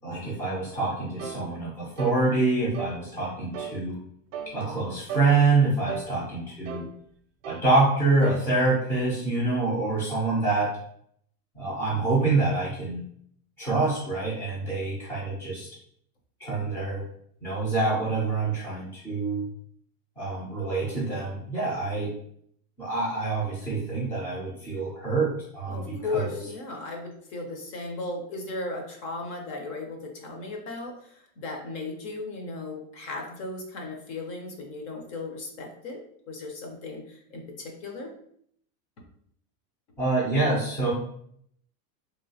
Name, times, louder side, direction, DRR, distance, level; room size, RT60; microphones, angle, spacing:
voice 1, 0.0-4.0 4.5-6.8 7.4-10.7 11.5-13.0 13.6-15.7 16.4-17.0 17.4-19.5 20.2-22.1 22.8-26.4 40.0-40.9, right 3 dB, 5° left, -6 dB, 0.4 m, -26 dB
sound 1, 1.2-1.4 2.0-2.2 2.7-3.0 3.5-3.8 4.3-4.5 5.1-5.3 5.9-6.1 6.6-6.9 7.4-7.7 8.2-8.5 9.0-9.1, right 7 dB, 60° right, 0.5 m, -35 dB
voice 2, 25.7-36.0 36.3-38.1, left 3 dB, 45° left, 2 dB, 0.7 m, -36 dB
3.0 x 2.7 x 2.7 m, 0.66 s
supercardioid pair, 165°, 43 cm